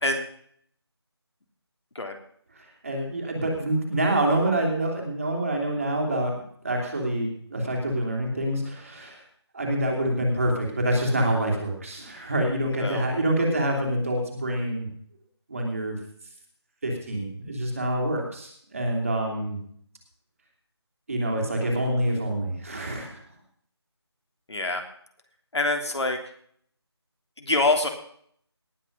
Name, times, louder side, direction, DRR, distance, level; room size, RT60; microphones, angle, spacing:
voice 1, 2.8-9.2 9.5-14.9 15.5-16.0 16.8-19.6 21.1-23.2, right 1 dB, 30° right, 1 dB, 3.1 m, -26 dB
voice 2, 24.5-24.8 25.5-26.2 27.4-27.9, left 2 dB, 75° left, 4 dB, 3.1 m, -25 dB
18.5 x 6.8 x 5.3 m, 0.62 s
figure-of-eight pair, 175°, 14 cm